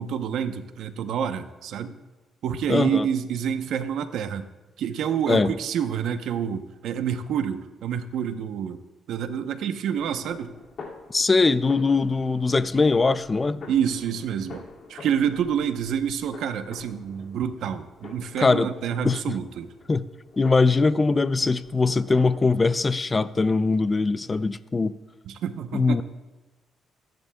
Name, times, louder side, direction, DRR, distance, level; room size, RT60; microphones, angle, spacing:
voice 1, 0.0-2.0 2.4-4.5 4.8-8.8 9.1-10.5 13.7-19.7 25.3-26.0, right 8 dB, 75° right, 0.8 m, -28 dB
voice 2, 2.7-3.1 5.3-5.5 11.1-13.6 18.4-18.7 19.0-19.3 19.9-20.0 20.4-24.9 25.7-26.0, left 3 dB, 25° left, 0.5 m, -21 dB
sound 1, 9.9-22.6, left 4 dB, 60° left, 2.3 m, -46 dB
26.5 x 10.5 x 2.3 m
cardioid pair, 90°, 0 cm